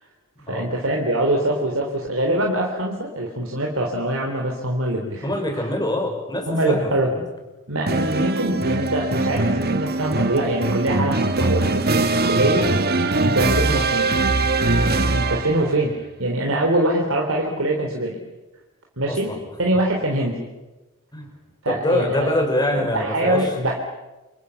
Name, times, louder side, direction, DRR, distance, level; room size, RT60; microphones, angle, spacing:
voice 1, 0.5-5.3 5.5-5.7 6.5-7.1 7.7-12.7 13.2-14.1 15.0-15.9 16.2-18.2 19.0-19.3 19.6-20.4 21.6-22.4 22.7-23.7, right 1 dB, 70° right, 0 dB, 3.8 m, -23 dB
voice 2, 5.2-7.2 15.3-15.5 19.1-19.4 21.1-21.3 21.7-23.5, left 1 dB, 20° left, 3 dB, 6.1 m, -25 dB
sound 1, 7.9-15.7, right 2 dB, 45° right, 1.8 m, -21 dB
29.0 x 27.0 x 7.2 m, 1.1 s
head